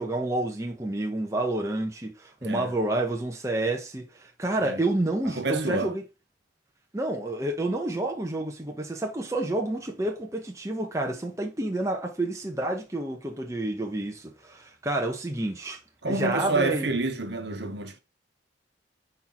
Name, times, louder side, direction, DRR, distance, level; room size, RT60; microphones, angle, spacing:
voice 1, 0.0-6.0 6.9-15.8 16.1-16.9, right 2 dB, 15° right, 0.9 m, -29 dB
voice 2, 2.4-2.7 4.6-4.8 5.4-5.9 16.0-18.0, right 3 dB, 65° right, 1.1 m, -28 dB
5.5 x 4.5 x 4.0 m
head